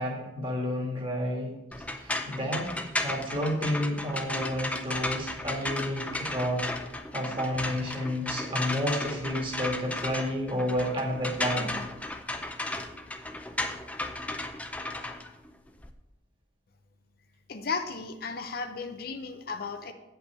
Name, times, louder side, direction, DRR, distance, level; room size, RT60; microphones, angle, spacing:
voice 1, 0.0-1.6 2.0-2.7 3.0-6.6 7.1-11.7, equal, 25° right, 0 dB, 1.8 m, -30 dB
sound 1, 1.7-15.9, left 2 dB, 5° left, 0.4 m, -34 dB
voice 2, 17.5-19.9, left 4 dB, 50° left, 7 dB, 0.6 m, -34 dB
8.4 x 5.5 x 6.8 m, 1.0 s
head